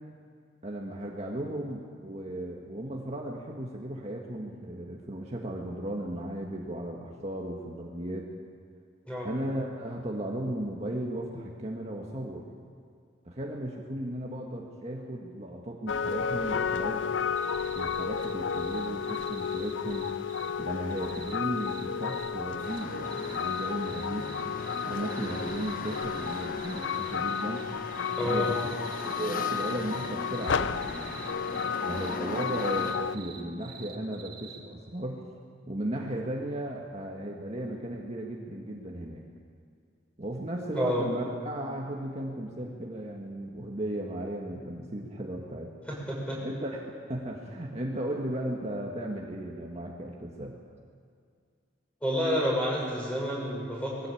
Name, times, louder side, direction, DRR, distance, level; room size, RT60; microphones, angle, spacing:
voice 1, 0.6-8.3 9.2-12.5 13.2-17.1 17.7-20.1 20.6-24.3 24.8-27.6 28.2-28.7 29.0-31.2 31.9-35.2 35.7-39.2 40.2-45.7 46.4-50.6, right 1 dB, 35° right, -1 dB, 1.7 m, -35 dB
sound 1, 15.9-33.2, left 6 dB, 70° left, 0.5 m, -32 dB
sound 2, 17.4-20.5 20.9-22.3 22.6-27.6 27.9-34.6, right 7 dB, 50° right, 2.4 m, -47 dB
sound 3, 22.6-32.9, left 3 dB, 45° left, 1.2 m, -39 dB
voice 2, 28.2-28.5 40.7-41.0 45.9-46.4 52.0-54.1, equal, 5° left, -4 dB, 6.1 m, -29 dB
21.5 x 15.0 x 8.6 m, 2.2 s
head